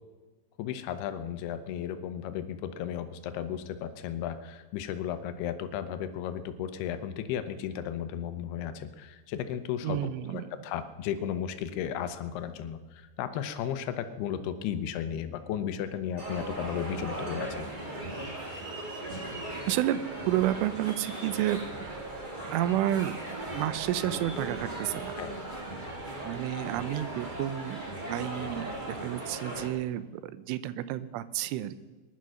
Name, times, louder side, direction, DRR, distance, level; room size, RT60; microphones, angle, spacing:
voice 1, 0.6-10.0 10.3-17.7 25.2-25.3, left 9 dB, 80° left, 10 dB, 2.4 m, -34 dB
voice 2, 9.8-10.5 19.6-20.0 20.3-21.9 22.5-23.2 23.5-25.2 26.2-31.7, right 13 dB, 80° right, 15 dB, 3.1 m, -31 dB
sound 1, 16.1-21.5 21.9-24.8 25.4-25.7, right 2 dB, 50° right, 5.0 m, -50 dB
sound 2, 16.2-29.7, right 1 dB, 65° right, 0.4 m, -38 dB
20.0 x 11.5 x 6.4 m, 1.2 s
omnidirectional pair, 5.7 m